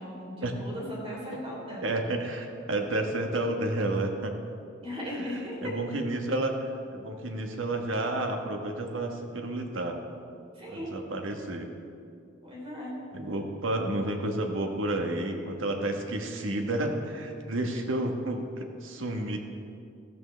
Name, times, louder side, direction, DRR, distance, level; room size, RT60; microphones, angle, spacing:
voice 1, 0.0-1.9 4.8-6.0 10.5-10.9 12.4-12.9, equal, 30° right, -4 dB, 3.5 m, -37 dB
voice 2, 1.8-4.4 5.6-10.0 10.7-11.7 13.1-19.4, right 1 dB, 75° right, 3 dB, 1.3 m, -31 dB
14.0 x 13.5 x 3.3 m, 2.4 s
head